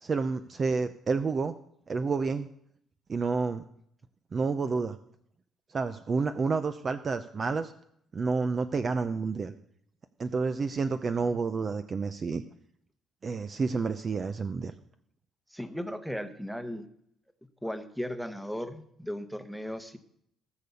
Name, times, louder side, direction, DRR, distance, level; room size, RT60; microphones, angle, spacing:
voice 1, 0.0-1.5 1.9-2.5 3.1-3.6 4.3-5.0 5.7-7.7 8.1-9.5 10.2-12.4 13.2-14.7, right 4 dB, 30° right, 11 dB, 0.5 m, -29 dB
voice 2, 15.5-16.9 17.6-20.0, equal, ahead, 10 dB, 1.0 m, -36 dB
17.5 x 6.8 x 7.0 m, 0.70 s
cardioid pair, 150°, 0 cm